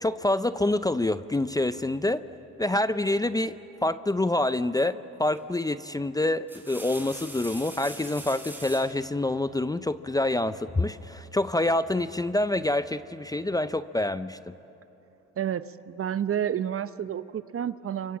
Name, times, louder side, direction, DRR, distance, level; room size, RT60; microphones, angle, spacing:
voice 1, 0.0-2.2 2.6-3.5 3.8-14.6, left 2 dB, 10° left, 13 dB, 0.6 m, -26 dB
sound 1, 5.3-5.6 6.3-9.0 10.4-11.1, right 1 dB, 5° right, 5.2 m, -43 dB
voice 2, 15.4-18.2, right 9 dB, 40° right, 14 dB, 0.8 m, -30 dB
29.5 x 24.5 x 7.3 m, 3.0 s
supercardioid pair, 80°, 34 cm